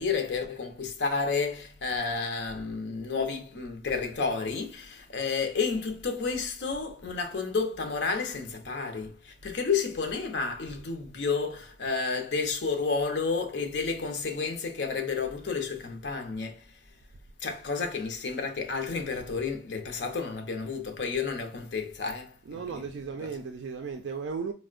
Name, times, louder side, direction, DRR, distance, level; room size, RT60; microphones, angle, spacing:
voice 1, 0.0-16.6 17.4-22.8, left 4 dB, 70° left, 0.6 m, -31 dB
voice 2, 22.4-24.5, right 5 dB, 75° right, 0.3 m, -35 dB
4.3 x 2.1 x 2.4 m
head